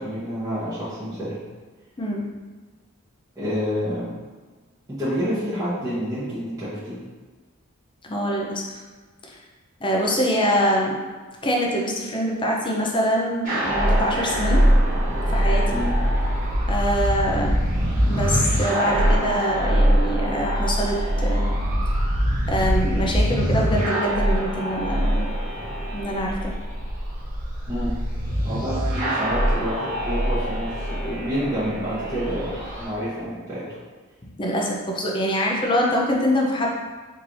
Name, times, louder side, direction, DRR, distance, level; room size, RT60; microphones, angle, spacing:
voice 1, 0.0-1.4 3.4-4.1 5.0-7.0 15.7-15.9 27.7-27.9 28.4-33.6, equal, 15° right, -13 dB, 0.9 m, -28 dB
voice 2, 8.0-8.8 9.2-9.4 9.8-10.9 11.4-14.6 15.3-15.8 16.7-17.6 18.1-21.6 22.5-25.3 25.9-26.5 34.2-36.7, equal, 20° left, -2 dB, 0.5 m, -24 dB
sound 1, 13.4-32.9, equal, 35° right, 1.4 m, -23 dB
4.6 x 3.2 x 2.6 m, 1.4 s
head